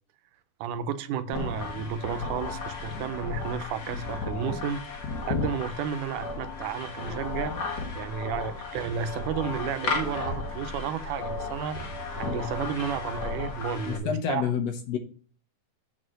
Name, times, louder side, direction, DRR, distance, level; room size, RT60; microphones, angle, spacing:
voice 1, 0.6-7.5 8.0-11.8 12.1-14.5, right 7 dB, 85° right, 12 dB, 2.2 m, -32 dB
sound 1, 1.3-14.0, left 4 dB, 50° left, 1.3 m, -34 dB
sound 2, 7.1-7.7 8.8-9.6 10.2-11.0 11.7-12.8, right 5 dB, 40° right, 2.0 m, -46 dB
voice 2, 13.9-15.0, left 8 dB, 70° left, 6 dB, 1.8 m, -28 dB
7.5 x 4.2 x 6.3 m, 0.43 s
omnidirectional pair, 3.5 m